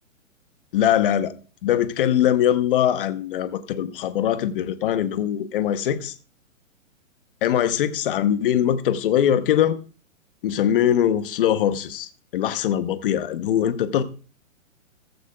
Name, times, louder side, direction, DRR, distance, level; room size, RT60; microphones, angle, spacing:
voice 1, 0.7-1.3 1.6-6.1 7.4-9.8 10.4-14.0, left 10 dB, 40° left, 0.9 m, -22 dB
15.0 x 14.5 x 2.3 m
hypercardioid pair, 160°, 41 cm